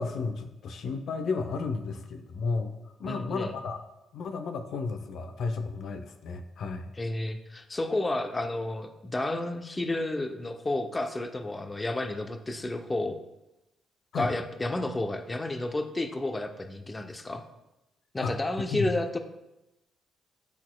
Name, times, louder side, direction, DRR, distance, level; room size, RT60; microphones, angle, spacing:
voice 1, 0.0-2.7 3.0-3.8 4.1-6.9 14.1-14.3 18.2-18.3 18.7-18.9, left 4 dB, 65° left, 6 dB, 0.5 m, -33 dB
voice 2, 3.1-3.5 7.0-13.2 14.1-17.4 18.1-19.2, left 2 dB, 20° left, 7 dB, 0.5 m, -31 dB
10.5 x 4.1 x 2.2 m, 0.93 s
cardioid pair, 90°, 0 cm